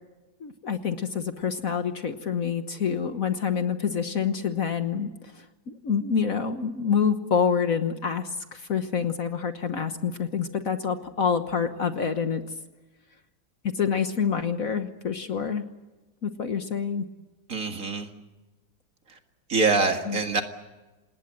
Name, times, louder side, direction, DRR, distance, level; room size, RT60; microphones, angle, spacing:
voice 1, 0.4-12.4 13.7-15.6 16.2-17.0 20.1-20.2, left 6 dB, 50° left, 8 dB, 1.5 m, -27 dB
voice 2, 17.5-18.1 19.5-20.4, right 3 dB, 45° right, 5 dB, 2.3 m, -24 dB
27.5 x 19.5 x 7.7 m, 1.1 s
omnidirectional pair, 2.0 m